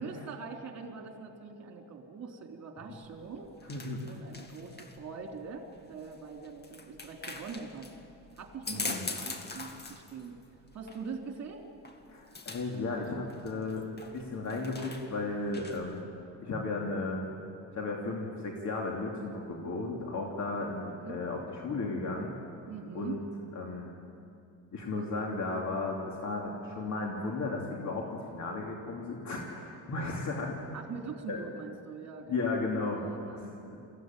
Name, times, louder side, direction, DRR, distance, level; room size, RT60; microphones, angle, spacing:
voice 1, 0.0-3.5 4.1-7.9 8.4-10.4 10.7-11.7 21.0-21.2 22.7-23.2 30.7-32.6 32.9-33.5, right 5 dB, 45° right, 2 dB, 3.6 m, -43 dB
sound 1, 3.0-16.0, left 3 dB, 25° left, 1.9 m, -44 dB
voice 2, 3.6-4.0 8.7-9.1 12.1-13.8 14.1-16.0 16.4-17.2 17.7-22.3 22.9-23.2 23.5-23.9 24.7-30.6 31.3-31.4 32.3-33.0 33.3-33.5, left 3 dB, 50° left, -1 dB, 3.0 m, -34 dB
22.0 x 15.5 x 9.3 m, 2.6 s
cardioid pair, 95°, 36 cm